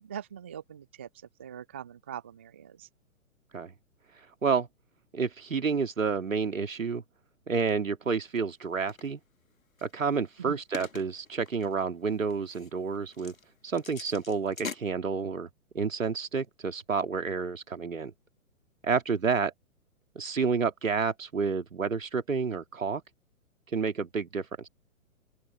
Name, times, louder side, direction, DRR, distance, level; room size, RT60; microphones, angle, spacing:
voice 1, 0.0-2.9 10.4-10.6, right 9 dB, 10° right, 0.4 m, -42 dB
voice 2, 5.1-7.0 7.5-9.2 9.8-13.3 13.6-15.5 15.7-18.1 18.8-19.5 20.1-23.0 23.7-24.7, right 5 dB, 65° right, 2.9 m, -29 dB
sound 1, 8.3-9.1 9.8-14.8, left 4 dB, 75° left, 2.0 m, -44 dB
open air
figure-of-eight pair, 120°, 42 cm